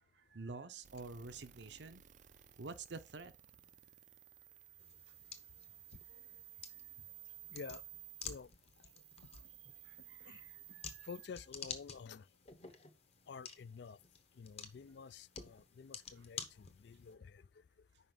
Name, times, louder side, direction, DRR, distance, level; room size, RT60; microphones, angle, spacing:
voice 1, 0.0-2.0 2.6-3.3 9.8-11.1, right 3 dB, 65° right, 0.7 m, -49 dB
sound 1, 0.8-11.3, right 13 dB, 40° right, 0.4 m, -57 dB
sound 2, 4.8-17.1, left 6 dB, 35° left, 0.9 m, -52 dB
voice 2, 7.5-7.8 8.2-8.5 10.3-10.4 11.0-12.2 13.3-14.0 14.4-17.4, left 5 dB, 60° left, 0.4 m, -50 dB
5.5 x 5.1 x 6.0 m
head